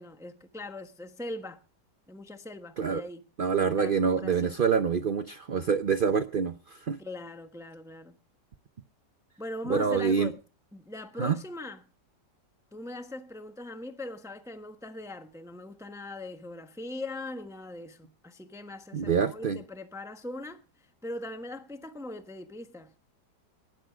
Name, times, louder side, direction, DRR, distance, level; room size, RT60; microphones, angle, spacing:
voice 1, 0.0-1.6 2.1-3.2 3.8-4.6 7.0-8.2 9.4-10.4 10.7-11.8 12.7-22.9, left 2 dB, ahead, 1.0 m, -41 dB
voice 2, 3.4-7.0 9.7-10.3 11.2-11.4 18.9-19.6, right 6 dB, 50° right, 0.6 m, -26 dB
18.5 x 11.0 x 5.0 m
omnidirectional pair, 1.9 m